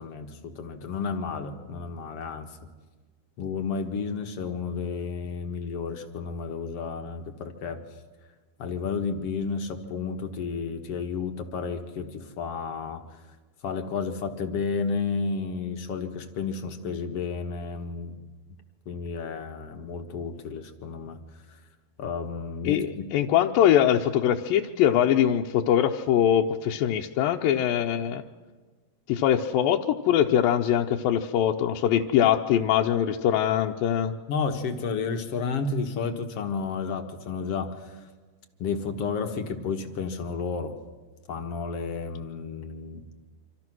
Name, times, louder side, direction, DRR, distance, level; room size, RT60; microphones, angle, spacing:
voice 1, 0.0-2.6 3.4-7.8 8.6-13.0 13.6-18.2 18.9-21.2 21.5-21.6 22.0-23.1 34.3-38.1 38.6-40.8 41.3-43.0, left 5 dB, 55° left, 6 dB, 1.8 m, -32 dB
voice 2, 22.7-28.2 29.1-34.1, left 10 dB, 75° left, 1 dB, 2.4 m, -22 dB
27.0 x 26.5 x 6.2 m, 1.3 s
omnidirectional pair, 4.5 m